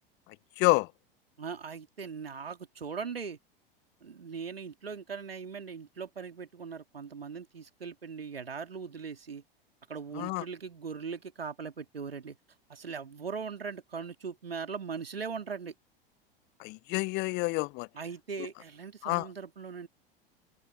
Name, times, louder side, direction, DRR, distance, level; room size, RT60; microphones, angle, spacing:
voice 1, 1.4-3.4 4.0-9.4 9.9-12.4 12.7-15.7 17.9-19.9, right 5 dB, 85° right, 3.0 m, -40 dB
voice 2, 16.6-17.9 19.0-19.2, left 25 dB, 35° left, 0.5 m, -28 dB
figure-of-eight pair, 90°, 29 cm